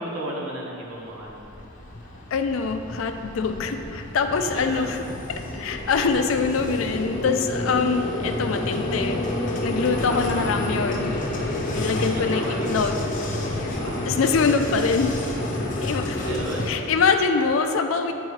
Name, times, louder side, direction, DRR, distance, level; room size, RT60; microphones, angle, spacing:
voice 1, 0.0-1.5 1.9-2.2 4.3-5.0 10.0-10.4 12.0-12.7 13.8-14.2 16.1-16.8, right 1 dB, 75° right, -3 dB, 1.2 m, -34 dB
Vehicle, 1.1-16.8, left 1 dB, 40° left, 0.7 m, -29 dB
voice 2, 2.3-5.0 5.3-9.2 9.6-11.2 11.7-13.1 14.1-15.2 15.8-16.2 16.7-18.1, left 5 dB, 70° left, 7 dB, 0.4 m, -24 dB
9.1 x 4.5 x 3.2 m, 2.8 s
head